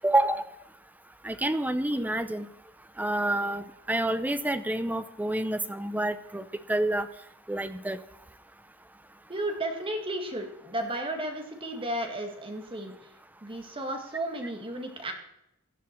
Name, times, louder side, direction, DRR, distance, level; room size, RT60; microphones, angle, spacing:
voice 1, 0.0-0.5 1.2-2.5 3.0-7.1 7.5-8.0, right 1 dB, 10° right, 11 dB, 0.7 m, -28 dB
voice 2, 9.3-13.0 13.4-15.1, right 1 dB, 25° right, 4 dB, 1.9 m, -33 dB
16.5 x 11.0 x 4.5 m, 0.82 s
head